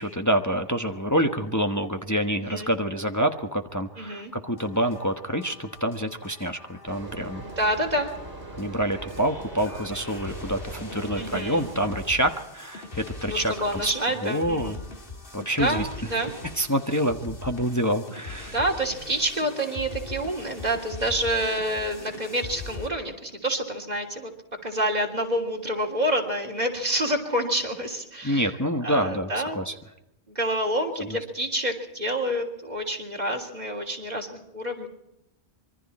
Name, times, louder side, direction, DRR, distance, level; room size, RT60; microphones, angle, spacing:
voice 1, 0.0-7.5 8.6-13.5 13.8-13.9 14.2-14.7 15.3-15.9 16.6-18.6 28.2-29.7 31.0-31.1, equal, 15° left, 5 dB, 1.2 m, -27 dB
voice 2, 4.0-4.3 7.4-8.1 11.2-11.7 13.2-14.8 15.5-16.3 18.5-24.3 24.6-28.5 28.8-29.6 30.3-34.9, right 1 dB, 40° right, 2 dB, 3.4 m, -28 dB
sound 1, 4.5-22.9, left 3 dB, 55° left, 2.4 m, -41 dB
sound 2, 6.9-12.1, right 2 dB, 65° right, 2.6 m, -40 dB
26.0 x 23.5 x 4.3 m, 0.85 s
omnidirectional pair, 1.1 m